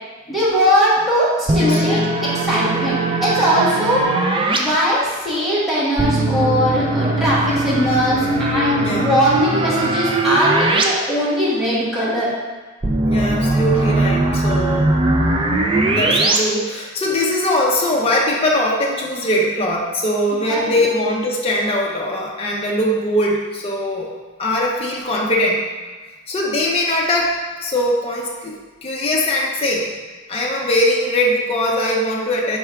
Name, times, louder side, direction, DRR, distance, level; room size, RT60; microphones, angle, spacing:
voice 1, 0.3-4.0 4.6-12.3 20.5-20.8, equal, ahead, -9 dB, 1.1 m, -20 dB
sound 1, 1.5-4.6 6.0-10.8 11.2-11.3 12.8-16.4, right 2 dB, 25° right, 0.4 m, -19 dB
voice 2, 1.6-2.0 3.7-3.9 8.8-9.1 13.1-14.9 15.9-24.1 24.4-25.6 26.3-29.9 30.3-32.6, left 1 dB, 30° left, -3 dB, 0.6 m, -21 dB
4.5 x 3.5 x 3.4 m, 1.3 s
head